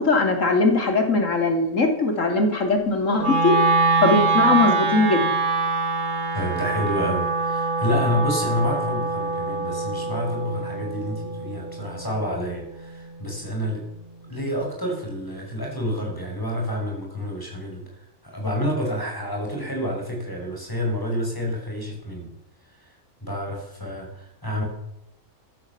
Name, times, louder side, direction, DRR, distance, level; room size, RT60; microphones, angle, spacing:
voice 1, 0.0-3.5 4.0-5.3, left 3 dB, 60° left, 4 dB, 3.2 m, -20 dB
Wind instrument woodwind instrument, 3.2-13.4, right 3 dB, 35° right, 1.7 m, -24 dB
voice 2, 6.3-13.9 14.3-17.8 18.2-22.3 22.6-22.9 23.2-24.6, equal, 15° left, 1 dB, 5.3 m, -28 dB
14.0 x 13.5 x 7.1 m, 0.85 s
omnidirectional pair, 1.5 m